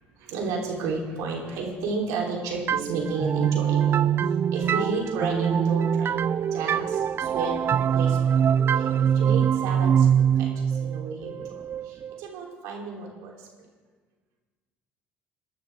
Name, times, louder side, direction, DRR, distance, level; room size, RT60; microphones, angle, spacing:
voice 1, 0.2-4.1 4.5-8.4 8.7-13.7, right 3 dB, 70° right, -1 dB, 3.5 m, -32 dB
sound 1, 2.7-12.2, right 8 dB, 45° right, 0.4 m, -23 dB
21.5 x 12.0 x 3.6 m, 1.4 s
hypercardioid pair, 65°, 6 cm